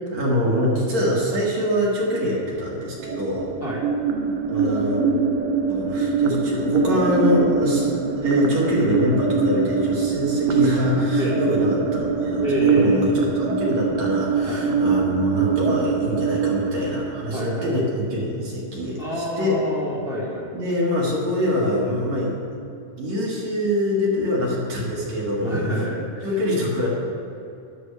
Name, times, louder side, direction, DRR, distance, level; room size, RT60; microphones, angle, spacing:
voice 1, 0.0-3.5 4.5-5.0 5.7-7.9 8.2-19.0 19.4-19.5 20.5-22.4 23.0-25.9 26.2-26.9, left 1 dB, 60° right, -5 dB, 2.9 m, -24 dB
sound 1, 3.0-18.0, right 4 dB, 80° right, 2.5 m, -23 dB
voice 2, 12.4-13.0 14.4-14.6 17.3-17.7 19.0-20.5 25.4-26.4, equal, 35° left, -9 dB, 2.2 m, -27 dB
13.0 x 10.5 x 3.4 m, 2.6 s
omnidirectional pair, 3.8 m